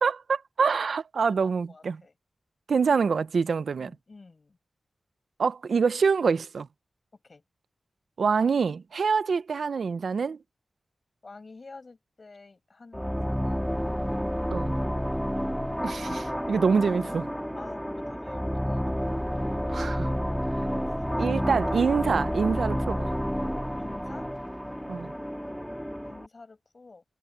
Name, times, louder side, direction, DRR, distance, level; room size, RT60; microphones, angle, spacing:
voice 1, 0.0-2.0 2.7-3.9 5.4-6.7 8.2-10.4 14.5-14.7 15.8-17.3 19.7-20.1 21.2-23.1 24.9-25.1, right 5 dB, 75° right, 0.7 m, -25 dB
voice 2, 1.3-2.1 3.7-4.6 7.2-7.4 11.2-13.7 17.5-19.8 20.9-21.0 23.8-24.3 26.0-27.0, left 3 dB, 40° left, 7.4 m, -49 dB
sound 1, 12.9-26.3, equal, ahead, 1.9 m, -30 dB
wide cardioid pair, 105°, 0 cm